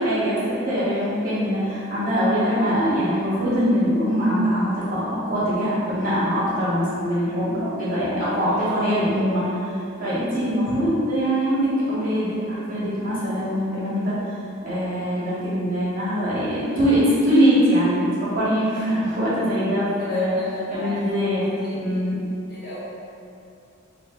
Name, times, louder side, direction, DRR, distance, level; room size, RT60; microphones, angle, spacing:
voice 1, 0.0-9.5 10.0-14.2 14.6-20.4 20.7-21.5 21.8-22.2, equal, 40° right, -10 dB, 0.9 m, -22 dB
voice 2, 8.4-9.1 20.0-22.2 22.5-22.8, equal, 50° left, -9 dB, 1.0 m, -37 dB
5.0 x 2.1 x 2.3 m, 2.6 s
head